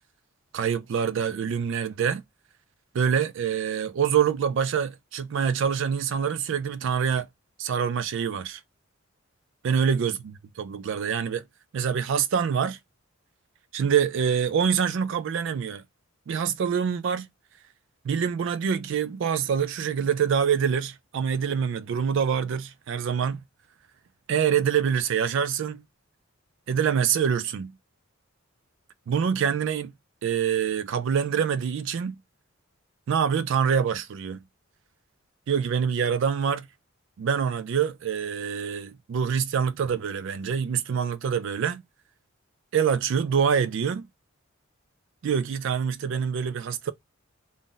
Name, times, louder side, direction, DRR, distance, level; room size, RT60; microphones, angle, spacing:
voice 1, 0.5-2.2 2.9-7.3 7.6-8.6 9.6-11.4 11.7-12.8 13.7-15.8 16.3-17.3 18.0-23.4 24.3-25.8 26.7-27.7 29.1-29.9 30.2-32.2 33.1-34.4 35.5-36.7 37.2-41.8 42.7-44.1 45.2-46.9, right 7 dB, 60° right, 0.3 m, -25 dB
2.5 x 2.0 x 3.7 m
head